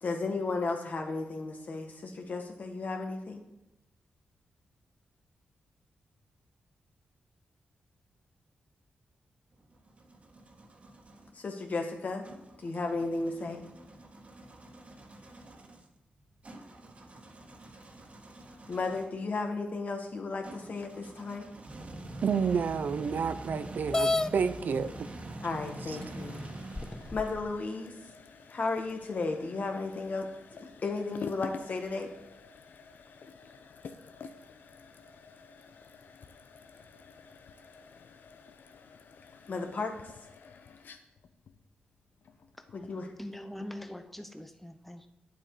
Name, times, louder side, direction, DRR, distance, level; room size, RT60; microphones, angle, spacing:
voice 1, 0.0-3.4 11.3-12.2 12.6-13.6 18.7-21.5 25.4-26.4 27.1-27.9 28.5-30.3 30.8-32.1 39.5-40.1 42.7-43.1 43.6-43.7, left 3 dB, 55° left, 1.8 m, -34 dB
sound 1, 9.5-11.3 12.2-19.2 20.4-27.7, right 1 dB, 40° right, 1.8 m, -46 dB
voice 2, 22.2-25.1 25.9-26.0, right 6 dB, 65° right, 0.6 m, -30 dB
sound 2, 23.9-24.3 25.3-25.4 26.0-26.1 26.7-27.4, left 2 dB, 20° left, 0.3 m, -29 dB
sound 3, 25.3-43.0, left 5 dB, 75° left, 0.8 m, -50 dB
voice 3, 43.2-45.1, left 1 dB, 5° left, 0.8 m, -43 dB
9.1 x 7.7 x 5.1 m
cardioid pair, 70°, 3 cm